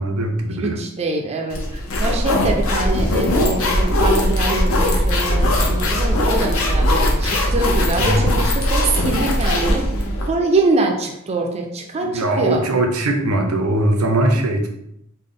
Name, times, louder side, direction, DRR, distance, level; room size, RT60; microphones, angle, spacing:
voice 1, 0.0-0.8 8.0-8.3 12.0-14.7, right 1 dB, 85° right, 4 dB, 0.6 m, -20 dB
voice 2, 0.6-9.9 10.3-12.6, right 3 dB, 30° right, 2 dB, 0.4 m, -24 dB
sound 1, 1.5-10.3, left 1 dB, 75° left, 0.7 m, -19 dB
3.6 x 2.1 x 3.7 m, 0.78 s
head